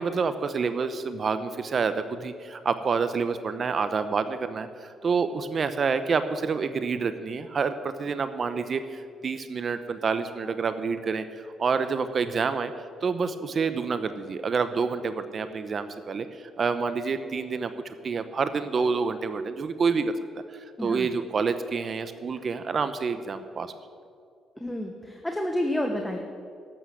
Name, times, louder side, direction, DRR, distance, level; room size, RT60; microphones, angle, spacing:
voice 1, 0.0-12.7 13.0-20.1 20.5-23.7, right 5 dB, 45° right, 11 dB, 0.7 m, -28 dB
voice 2, 20.8-21.1 24.6-26.2, left 1 dB, 5° left, 3 dB, 1.2 m, -29 dB
12.5 x 8.3 x 7.7 m, 2.4 s
cardioid pair, 90°, 0 cm